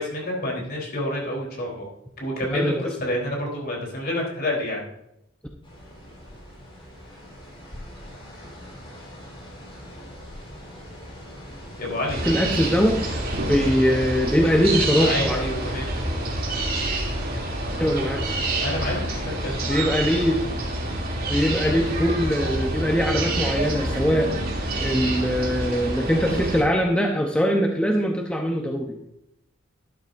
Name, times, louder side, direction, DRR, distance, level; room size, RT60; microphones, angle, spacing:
voice 1, 0.0-1.9 2.2-4.9 11.8-12.2 15.0-15.9 18.6-19.6, left 1 dB, 50° left, -2 dB, 3.7 m, -28 dB
voice 2, 2.5-2.8 12.2-15.4 17.8-18.2 19.6-20.6 21.3-24.3 24.6-28.9, equal, 5° left, 1 dB, 0.8 m, -22 dB
sound 1, 5.6-20.3, equal, 25° left, 4.1 m, -42 dB
sound 2, 12.1-26.6, right 1 dB, 45° right, 2.8 m, -27 dB
12.0 x 11.5 x 2.6 m, 0.84 s
head